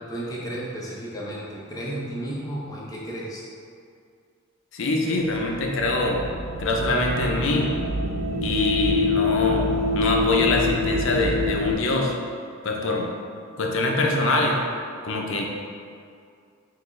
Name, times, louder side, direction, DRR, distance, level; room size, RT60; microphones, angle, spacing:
voice 1, 0.0-3.4, right 1 dB, 15° left, -5 dB, 0.6 m, -33 dB
voice 2, 4.7-6.2 6.6-7.7 8.4-9.7 9.9-12.1 12.6-13.1 13.6-14.6 15.0-15.5, left 2 dB, 60° left, 0 dB, 0.5 m, -24 dB
sound 1, 5.4-11.7, left 3 dB, 90° right, 0.5 m, -26 dB
5.7 x 2.4 x 3.1 m, 2.3 s
head